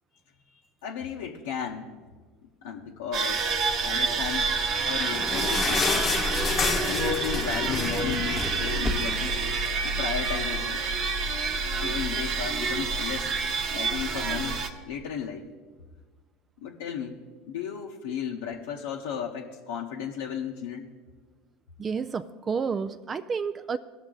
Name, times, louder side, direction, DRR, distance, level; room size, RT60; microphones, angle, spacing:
voice 1, 0.5-1.9 2.6-4.5 4.9-5.9 6.8-10.8 11.8-13.4 13.7-15.5 16.6-17.2 17.5-20.9, left 8 dB, 80° left, -1 dB, 0.8 m, -35 dB
sound 1, 3.1-14.7, right 4 dB, 55° right, 0.9 m, -28 dB
sound 2, 3.3-9.7, equal, ahead, 1.1 m, -41 dB
sound 3, 4.5-9.3 9.7-9.8 10.0-10.2 10.9-11.0, left 5 dB, 35° left, 0.9 m, -30 dB
voice 2, 21.8-23.8, right 5 dB, 30° right, 11 dB, 0.3 m, -30 dB
16.5 x 6.0 x 3.8 m, 1.4 s
hypercardioid pair, 85°, 0 cm